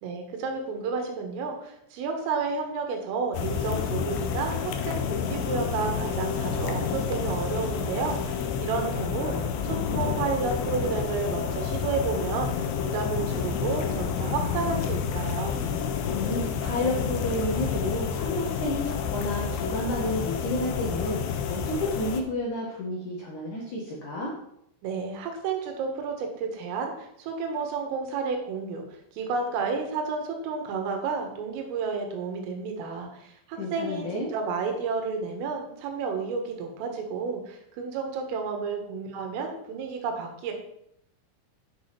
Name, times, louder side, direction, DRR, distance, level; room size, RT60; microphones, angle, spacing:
voice 1, 0.0-9.3 9.6-12.7 12.9-15.6 24.8-28.8 29.1-40.5, right 5 dB, 75° right, 3 dB, 4.1 m, -31 dB
sound 1, 3.3-22.2, left 7 dB, 75° left, 2.6 m, -29 dB
voice 2, 16.1-24.3 33.6-34.3, left 1 dB, 60° left, -3 dB, 2.1 m, -31 dB
9.9 x 6.3 x 5.9 m, 0.76 s
omnidirectional pair, 6.0 m